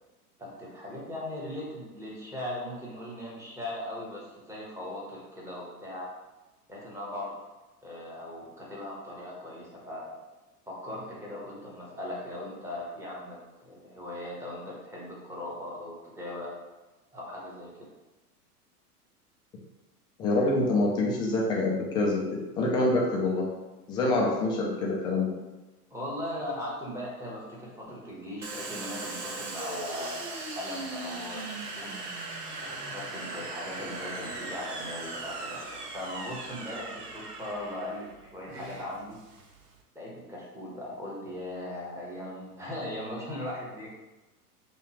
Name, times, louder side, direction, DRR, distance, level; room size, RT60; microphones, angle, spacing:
voice 1, 0.4-6.1 6.7-7.3 7.8-10.2 10.7-13.4 13.6-16.5 17.1-17.9 25.9-32.1 32.7-38.1 38.3-39.2 39.9-43.9, left 1 dB, 5° right, -5 dB, 1.2 m, -39 dB
voice 2, 20.2-23.5 23.9-25.3, left 2 dB, 10° left, -3 dB, 0.4 m, -26 dB
Domestic sounds home sounds, 28.4-39.8, right 3 dB, 80° right, 0.8 m, -39 dB
5.6 x 2.4 x 3.0 m, 1.1 s
figure-of-eight pair, 90°, 46 cm